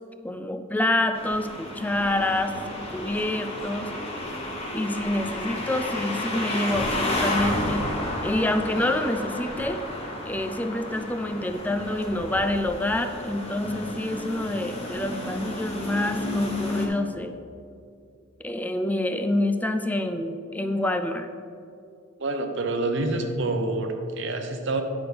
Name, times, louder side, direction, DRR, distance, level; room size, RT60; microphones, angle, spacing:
voice 1, 0.2-2.6 2.9-3.9 4.7-7.8 8.2-9.8 10.3-17.4 18.4-21.3, left 1 dB, 10° left, 7 dB, 0.3 m, -27 dB
sound 1, 1.1-16.9, left 1 dB, 30° left, 1.0 m, -31 dB
voice 2, 22.2-24.8, right 2 dB, 60° right, 5 dB, 0.8 m, -27 dB
9.5 x 5.9 x 3.4 m, 2.4 s
head